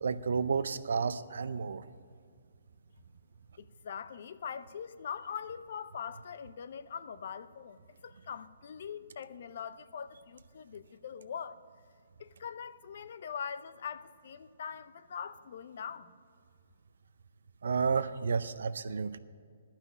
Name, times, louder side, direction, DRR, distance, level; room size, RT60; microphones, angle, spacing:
voice 1, 0.0-1.8 17.6-19.2, right 5 dB, 75° right, 0.5 m, -31 dB
voice 2, 3.6-11.6 12.2-16.1, left 7 dB, 60° left, 0.5 m, -42 dB
12.0 x 5.7 x 9.0 m
hypercardioid pair, 155°, 0 cm